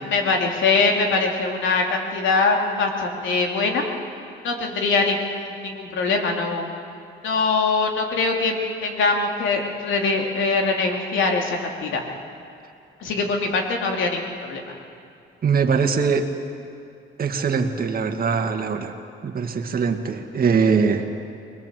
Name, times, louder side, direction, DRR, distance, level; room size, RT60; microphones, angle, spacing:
voice 1, 0.0-3.8 4.4-6.7 7.2-12.0 13.0-14.6, left 3 dB, 75° left, 1 dB, 3.2 m, -22 dB
voice 2, 15.4-16.3 17.2-18.9 19.2-21.1, right 5 dB, 50° right, 5 dB, 1.9 m, -22 dB
24.5 x 20.0 x 7.7 m, 2.5 s
cardioid pair, 90°, 20 cm